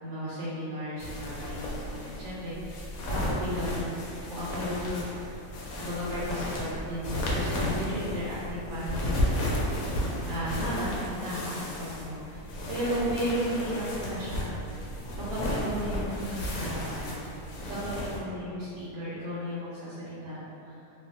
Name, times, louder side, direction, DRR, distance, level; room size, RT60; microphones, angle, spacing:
voice 1, 0.0-2.7 3.1-4.0 4.3-5.3 5.8-9.6 10.3-10.9 11.2-14.6 15.3-17.2 17.7-20.8, equal, 90° right, -10 dB, 1.2 m, -34 dB
sound 1, 1.0-18.2, left 1 dB, 70° left, 0.8 m, -33 dB
2.5 x 2.5 x 2.5 m, 2.7 s
omnidirectional pair, 1.8 m